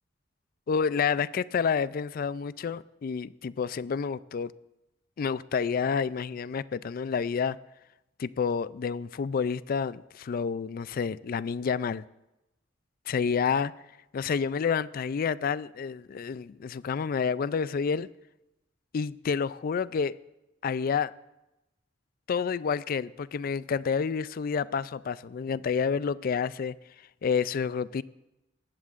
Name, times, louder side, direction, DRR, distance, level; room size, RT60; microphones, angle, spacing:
voice 1, 0.7-4.5 5.2-7.6 8.2-12.0 13.1-13.7 14.1-18.1 18.9-20.1 20.6-21.1 22.3-26.7 27.2-28.0, left 6 dB, 50° left, 0.3 m, -29 dB
19.0 x 13.5 x 2.5 m
head